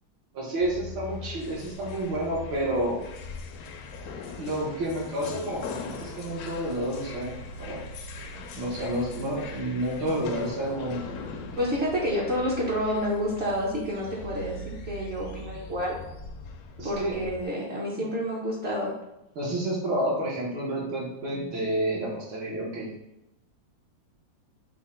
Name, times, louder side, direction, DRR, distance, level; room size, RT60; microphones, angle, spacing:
voice 1, 0.3-3.0 4.4-7.8 8.6-11.0 16.8-17.2 18.0-18.1 19.3-22.9, right 1 dB, 75° right, -6 dB, 1.7 m, -30 dB
sound 1, 0.6-17.5, left 2 dB, 75° left, 0.9 m, -40 dB
voice 2, 11.6-15.9 16.8-18.9, equal, 55° right, -5 dB, 0.7 m, -29 dB
5.3 x 2.1 x 4.2 m, 0.90 s
omnidirectional pair, 2.1 m